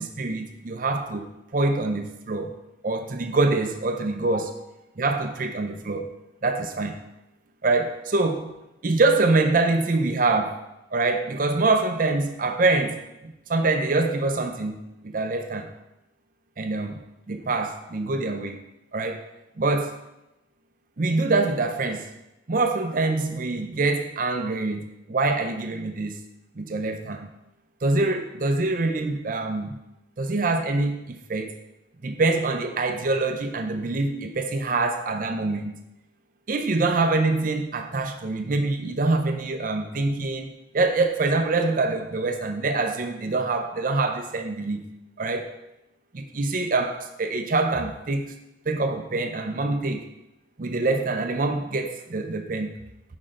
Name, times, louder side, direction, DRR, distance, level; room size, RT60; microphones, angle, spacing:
voice 1, 0.0-2.5 2.8-4.5 5.0-6.1 6.4-7.0 7.6-8.5 8.8-10.6 10.9-14.7 15.0-15.7 16.6-17.0 17.3-18.6 18.9-19.2 19.6-20.0 21.0-22.1 22.5-26.2 26.6-27.3 27.8-29.8 30.2-31.5 32.0-35.8 36.5-44.8 45.2-45.5 46.1-48.4 48.7-50.1 50.6-52.7, right 3 dB, 45° right, 6 dB, 0.6 m, -25 dB
6.2 x 5.2 x 3.7 m, 0.91 s
head